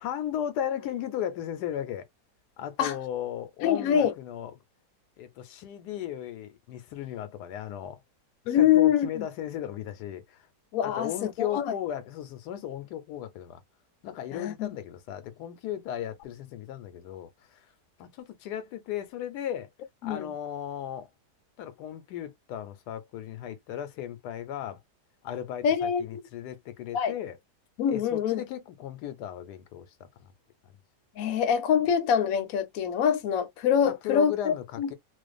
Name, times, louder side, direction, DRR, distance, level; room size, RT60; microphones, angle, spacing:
voice 1, 0.0-2.1 2.6-4.5 5.2-8.0 8.5-10.5 10.8-13.6 14.0-17.7 18.0-19.7 20.0-21.1 21.6-24.8 25.2-27.4 27.9-30.3 33.8-34.9, left 10 dB, 85° left, 1.2 m, -36 dB
voice 2, 3.6-4.1 8.5-9.2 10.7-11.7 14.3-14.7 20.0-20.3 25.6-26.2 26.9-27.1 27.8-28.4 31.2-34.9, left 8 dB, 70° left, 1.0 m, -25 dB
2.5 x 2.4 x 2.3 m
omnidirectional pair, 1.7 m